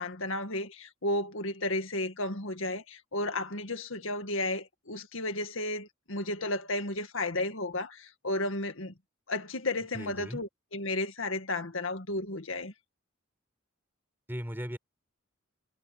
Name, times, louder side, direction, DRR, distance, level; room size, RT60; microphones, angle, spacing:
voice 1, 0.0-8.9 9.3-12.7, left 2 dB, 75° left, 2.0 m, -33 dB
voice 2, 9.9-10.4 14.3-14.8, equal, 10° right, 5.0 m, -37 dB
head